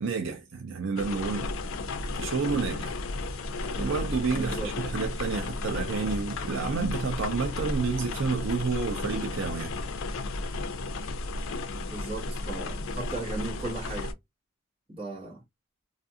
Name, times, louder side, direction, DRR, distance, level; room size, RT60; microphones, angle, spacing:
voice 1, 0.0-1.5 2.1-2.9 3.8-9.7, right 4 dB, 70° right, 0.5 m, -30 dB
sound 1, 1.0-14.1, left 2 dB, 75° left, 0.4 m, -33 dB
voice 2, 4.3-4.7 11.9-14.2 14.9-15.4, right 3 dB, 25° right, 1.2 m, -36 dB
2.5 x 2.4 x 2.7 m
head